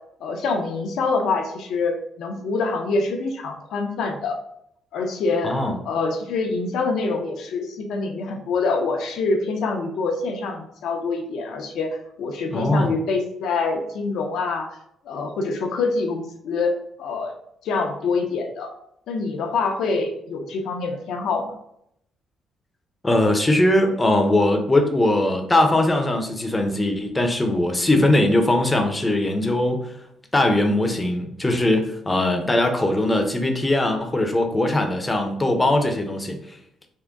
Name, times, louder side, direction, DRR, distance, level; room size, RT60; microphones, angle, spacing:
voice 1, 0.2-4.4 4.9-5.5 5.9-11.9 12.2-14.7 15.1-16.7 17.0-17.3 17.6-18.7 19.1-21.5 27.9-28.3 32.2-32.5, left 3 dB, 80° left, 3 dB, 0.6 m, -25 dB
voice 2, 5.4-5.8 12.5-12.9 23.0-29.9 30.3-36.4, left 1 dB, 15° left, 4 dB, 0.6 m, -20 dB
3.6 x 2.1 x 3.5 m, 0.74 s
cardioid pair, 90°, 0 cm